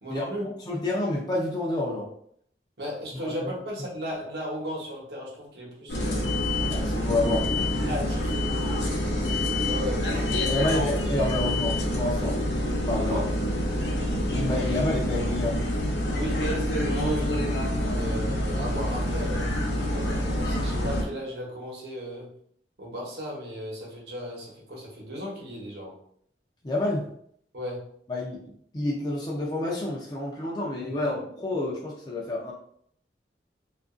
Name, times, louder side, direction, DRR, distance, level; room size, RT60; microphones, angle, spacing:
voice 1, 0.0-0.5 2.8-6.3 7.8-8.3 9.6-11.0 13.0-13.3 16.1-16.5 16.8-17.4 17.9-19.5 19.9-22.3 22.8-25.9 27.5-27.8, equal, 70° right, -3 dB, 1.0 m, -35 dB
voice 2, 0.7-2.1 3.2-3.5 6.7-7.4 10.4-12.4 12.9-13.2 14.3-15.6 26.6-27.1 28.1-32.5, left 2 dB, 25° left, -4 dB, 0.4 m, -29 dB
sound 1, 5.9-21.0, left 1 dB, 80° left, 0.6 m, -27 dB
2.8 x 2.4 x 2.5 m, 0.65 s
head